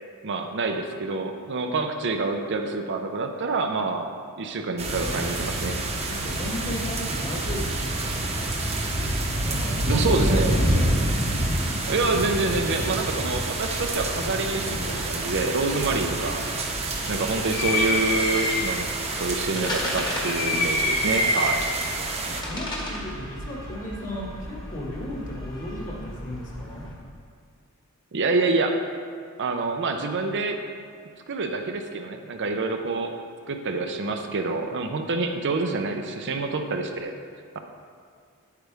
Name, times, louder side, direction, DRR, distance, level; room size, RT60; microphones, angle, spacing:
voice 1, 0.2-4.1 4.4-5.8 9.9-10.6 11.9-16.4 17.1-18.9 19.2-21.6 28.1-28.8 29.4-30.6 31.3-33.1 33.5-37.1, right 3 dB, 55° right, 4 dB, 0.6 m, -27 dB
sound 1, 4.8-22.4, right 1 dB, 30° right, 0.9 m, -28 dB
voice 2, 6.1-8.7 9.4-11.0 22.3-26.9, left 1 dB, 35° left, -4 dB, 1.8 m, -34 dB
sound 2, 13.9-26.9, left 1 dB, 20° left, 1.5 m, -31 dB
9.2 x 8.2 x 3.4 m, 2.1 s
head